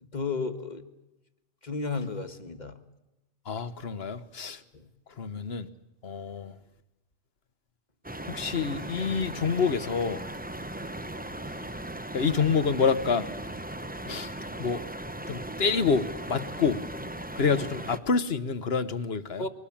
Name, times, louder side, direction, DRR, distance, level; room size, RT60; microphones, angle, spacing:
voice 1, 0.0-0.8 1.6-2.8 4.7-4.9 19.4-19.5, left 4 dB, 35° left, 8 dB, 1.7 m, -33 dB
voice 2, 3.5-4.6 5.2-5.7 6.0-6.6 8.3-10.2 12.1-13.3 14.1-14.3 14.6-14.8 15.3-16.8 17.4-19.4, left 5 dB, 55° left, 13 dB, 1.3 m, -27 dB
sound 1, 8.0-18.0, right 1 dB, 10° right, 0.8 m, -38 dB
23.0 x 19.0 x 8.6 m, 0.99 s
omnidirectional pair, 1.3 m